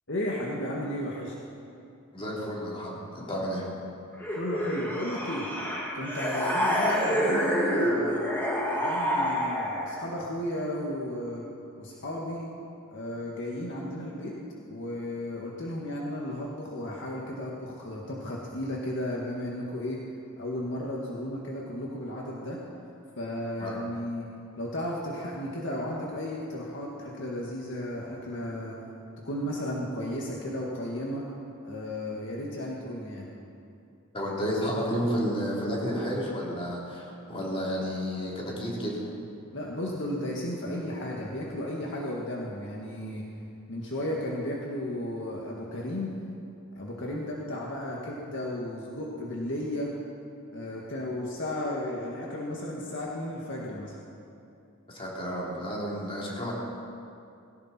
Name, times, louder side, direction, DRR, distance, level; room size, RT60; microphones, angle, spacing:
voice 1, 0.1-1.3 4.3-5.5 5.9-8.3 8.8-11.4 11.8-12.4 12.9-14.4 14.7-20.0 20.4-22.6 23.2-24.3 24.6-28.8 29.2-31.3 31.6-33.3 39.5-43.3 43.7-46.1 46.8-49.9 50.5-53.9, left 1 dB, 55° left, -3 dB, 1.9 m, -34 dB
voice 2, 2.1-3.7 23.6-23.8 34.1-39.2 54.9-56.5, equal, 25° left, -5 dB, 3.6 m, -31 dB
sound 1, 4.2-10.0, equal, 10° left, 2.3 m, -28 dB
18.5 x 17.5 x 4.4 m, 2.6 s
head